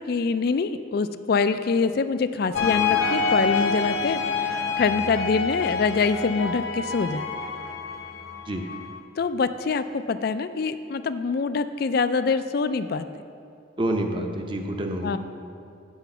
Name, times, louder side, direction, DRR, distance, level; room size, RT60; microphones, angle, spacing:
voice 1, 0.0-7.2 9.2-13.1 15.0-15.2, left 4 dB, 50° left, 11 dB, 0.3 m, -25 dB
sound 1, 2.5-9.0, left 5 dB, 80° left, 0.7 m, -27 dB
voice 2, 13.8-15.2, right 1 dB, 25° right, 3 dB, 0.7 m, -27 dB
8.1 x 5.8 x 6.9 m, 2.5 s
head